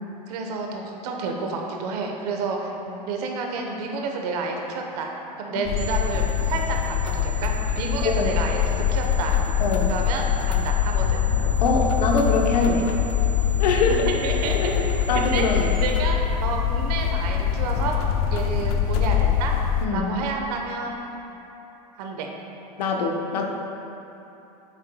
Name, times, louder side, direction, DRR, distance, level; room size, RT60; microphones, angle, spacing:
voice 1, 0.3-2.8 3.1-5.1 5.4-9.3 9.9-11.2 13.8-14.6 15.1-18.0 18.3-19.5 19.9-21.1 22.0-22.3, right 4 dB, 70° right, 2 dB, 1.1 m, -30 dB
sound 1, 5.6-19.9, left 9 dB, 65° left, 0.7 m, -23 dB
sound 2, 5.8-15.8, right 3 dB, 50° right, 1.1 m, -41 dB
voice 2, 9.6-9.9 11.6-12.9 13.6-14.1 14.6-15.7 19.8-20.1 22.8-23.5, left 3 dB, 80° left, 1 dB, 1.0 m, -23 dB
9.6 x 7.3 x 2.3 m, 3.0 s
hypercardioid pair, 100°, 21 cm